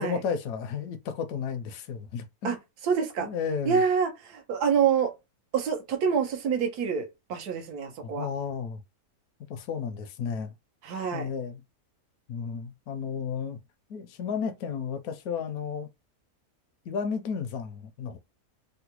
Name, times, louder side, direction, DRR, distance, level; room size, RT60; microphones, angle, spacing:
voice 1, 0.0-2.6 3.2-3.8 8.0-8.8 9.5-10.5 11.1-11.6 12.3-13.6 13.9-15.9 16.9-18.2, left 6 dB, 80° left, 1.1 m, -33 dB
voice 2, 2.8-3.3 3.6-5.1 5.5-8.3 10.8-11.3, right 6 dB, 85° right, 1.4 m, -26 dB
3.8 x 2.1 x 2.9 m
omnidirectional pair, 1.6 m